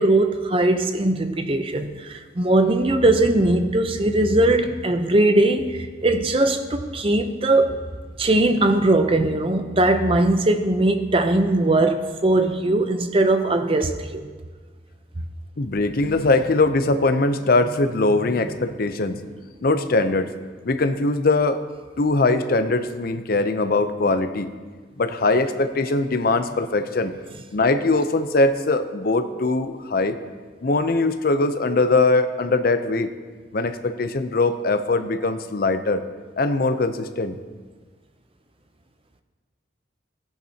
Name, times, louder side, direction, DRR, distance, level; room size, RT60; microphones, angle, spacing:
voice 1, 0.0-7.8 8.2-14.3, right 2 dB, 30° right, 7 dB, 0.6 m, -20 dB
voice 2, 15.6-19.2 19.6-20.3 20.6-21.6 22.0-24.5 25.0-27.2 27.5-30.2 30.6-33.1 33.5-36.0 36.4-37.4, left 2 dB, 50° left, 10 dB, 0.6 m, -21 dB
15.0 x 10.5 x 2.8 m, 1.5 s
head